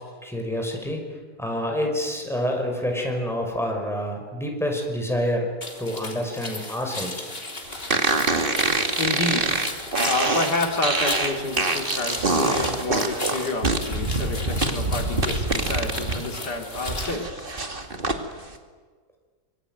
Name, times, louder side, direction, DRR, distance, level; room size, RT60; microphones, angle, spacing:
voice 1, 0.2-1.0 1.4-5.5 5.8-7.3, equal, ahead, 1 dB, 5.6 m, -27 dB
sound 1, 5.6-17.1, left 2 dB, 35° left, 3.7 m, -35 dB
sound 2, 7.9-16.2 16.6-18.2, right 2 dB, 30° right, 2.3 m, -25 dB
voice 2, 9.0-9.4 10.0-17.5, left 2 dB, 75° left, 3 dB, 3.4 m, -29 dB
25.5 x 23.5 x 9.2 m, 1.5 s
omnidirectional pair, 1.8 m